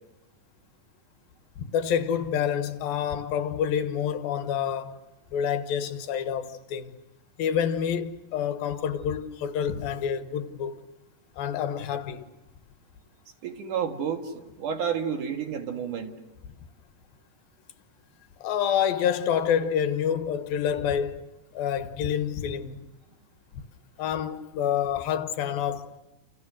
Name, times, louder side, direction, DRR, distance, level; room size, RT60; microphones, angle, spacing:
voice 1, 1.6-5.0 5.3-7.0 7.4-10.8 11.4-12.3 18.4-21.2 21.5-22.9 24.0-25.9, left 8 dB, 75° left, 3.0 m, -28 dB
voice 2, 13.4-16.1, right 7 dB, 60° right, 3.2 m, -30 dB
29.0 x 29.0 x 6.3 m
omnidirectional pair, 4.2 m